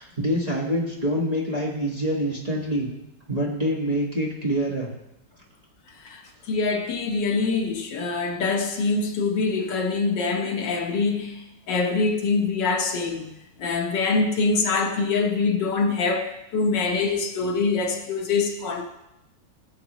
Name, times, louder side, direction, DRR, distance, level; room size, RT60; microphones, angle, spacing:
voice 1, 0.0-2.9 3.3-4.9, equal, 25° right, 1.3 m, -26 dB
voice 2, 6.5-13.3 13.6-18.8, left 4 dB, 75° left, 1.7 m, -24 dB
15.0 x 7.3 x 3.0 m
omnidirectional pair, 2.0 m